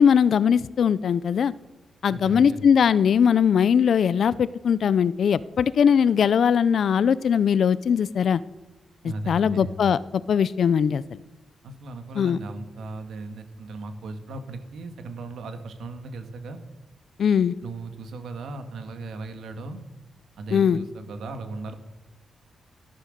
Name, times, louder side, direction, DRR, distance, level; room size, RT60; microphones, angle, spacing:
voice 1, 0.0-1.5 2.0-8.4 9.0-11.2 12.2-12.4 17.2-17.5 20.5-20.8, left 7 dB, 60° left, 18 dB, 0.5 m, -20 dB
voice 2, 2.1-2.6 9.0-9.8 11.6-16.6 17.6-19.8 20.4-21.7, right 2 dB, 80° right, 7 dB, 1.9 m, -37 dB
16.0 x 11.5 x 6.7 m, 1.0 s
wide cardioid pair, 125°, 0 cm